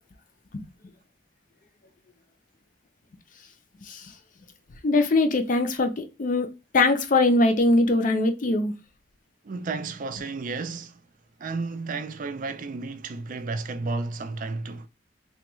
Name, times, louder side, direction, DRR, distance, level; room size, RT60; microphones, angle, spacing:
voice 1, 4.8-6.5 6.7-8.7, left 2 dB, 45° left, 0.5 m, -22 dB
voice 2, 9.4-11.0 11.4-14.9, right 3 dB, 45° right, 0.4 m, -32 dB
3.4 x 2.2 x 3.0 m
head